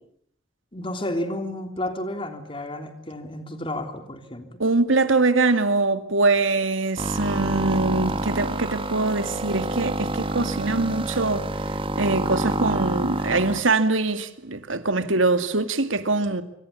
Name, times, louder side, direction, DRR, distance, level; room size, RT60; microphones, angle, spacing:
voice 1, 0.7-4.6, left 1 dB, 25° left, 3.3 m, -31 dB
voice 2, 4.6-11.5 12.0-16.4, right 3 dB, 80° right, 2.2 m, -23 dB
sound 1, 7.0-13.6, right 2 dB, 25° right, 1.7 m, -27 dB
26.0 x 25.0 x 8.5 m
head